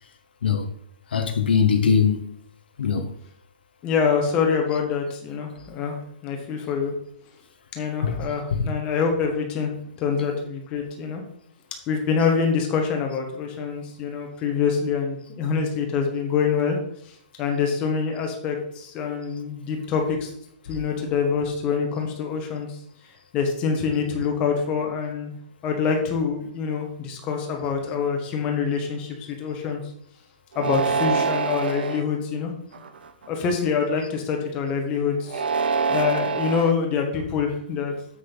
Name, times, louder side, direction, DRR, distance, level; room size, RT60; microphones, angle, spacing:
voice 1, 1.1-2.4 2.8-3.1 8.0-8.2, left 7 dB, 85° left, 1.1 m, -21 dB
voice 2, 3.8-6.9 7.7-11.2 11.9-16.8 17.0-20.3 20.7-22.8 23.3-25.3 25.6-29.8 30.5-32.5 33.3-35.4 35.9-37.9, left 6 dB, 20° left, 1.4 m, -25 dB
sound 1, 30.5-32.0 32.7-33.3 35.2-36.7, right 5 dB, 85° right, 0.9 m, -25 dB
7.6 x 6.4 x 3.9 m
hypercardioid pair, 170°, 5 cm